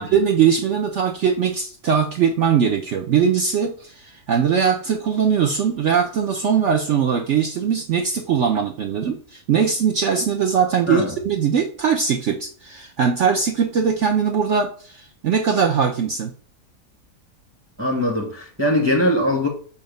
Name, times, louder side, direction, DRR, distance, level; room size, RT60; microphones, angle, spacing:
voice 1, 0.0-16.3, right 7 dB, 60° right, 0.8 m, -20 dB
voice 2, 17.8-19.5, left 1 dB, 10° right, 1.2 m, -21 dB
7.2 x 2.6 x 5.1 m
omnidirectional pair, 1.8 m